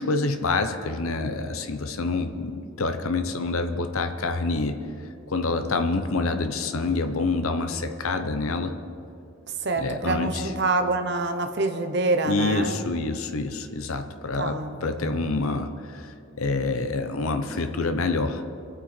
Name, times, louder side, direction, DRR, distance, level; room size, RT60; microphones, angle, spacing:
voice 1, 0.0-4.8 5.3-8.8 9.8-10.5 12.3-18.4, left 3 dB, 80° left, 7 dB, 0.8 m, -27 dB
voice 2, 9.6-12.8 14.4-15.2, right 2 dB, 50° right, 7 dB, 1.0 m, -26 dB
24.5 x 8.9 x 4.4 m, 2.6 s
head